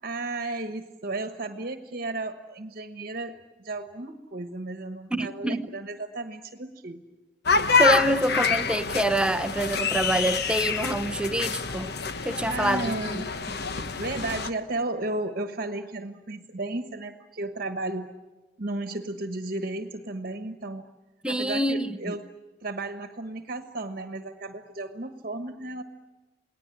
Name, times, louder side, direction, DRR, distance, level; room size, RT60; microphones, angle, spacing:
voice 1, 0.0-7.0 12.5-13.3 14.0-18.1 18.6-20.8 21.3-22.3 22.6-25.8, right 2 dB, 55° right, 1.3 m, -34 dB
voice 2, 5.1-5.7 7.8-11.9 12.2-12.8 13.8-13.9 21.2-22.2, right 1 dB, 5° right, 0.8 m, -26 dB
sound 1, 7.4-14.5, left 5 dB, 65° left, 1.1 m, -27 dB
28.5 x 19.5 x 9.9 m
head